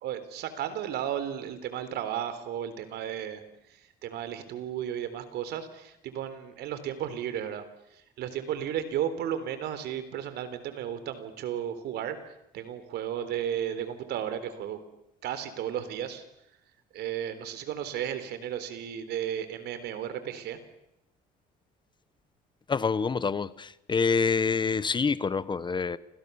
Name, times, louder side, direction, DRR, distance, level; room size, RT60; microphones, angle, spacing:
voice 1, 0.0-7.7 7.9-12.2 12.5-14.8 15.2-16.2 16.9-20.6, right 10 dB, 75° right, 3.7 m, -34 dB
voice 2, 22.7-26.0, left 5 dB, 25° left, 1.0 m, -27 dB
29.0 x 26.0 x 7.0 m
cardioid pair, 110°, 17 cm